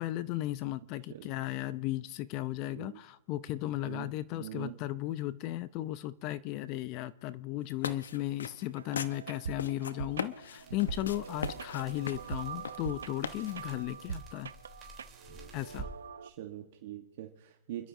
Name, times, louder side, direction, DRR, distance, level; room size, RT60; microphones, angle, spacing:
voice 1, 0.0-14.5 15.5-15.9, left 15 dB, 30° left, 16 dB, 0.5 m, -35 dB
voice 2, 2.6-3.0 3.8-4.1 4.4-4.7 16.2-17.9, right 12 dB, 45° right, 3 dB, 1.2 m, -43 dB
sound 1, 7.6-13.8, left 6 dB, 75° left, 0.9 m, -40 dB
sound 2, 8.8-16.3, right 7 dB, 75° right, 0.7 m, -43 dB
sound 3, 10.6-15.9, right 2 dB, 15° right, 3.5 m, -50 dB
29.5 x 12.5 x 2.7 m, 1.0 s
hypercardioid pair, 145°, 0 cm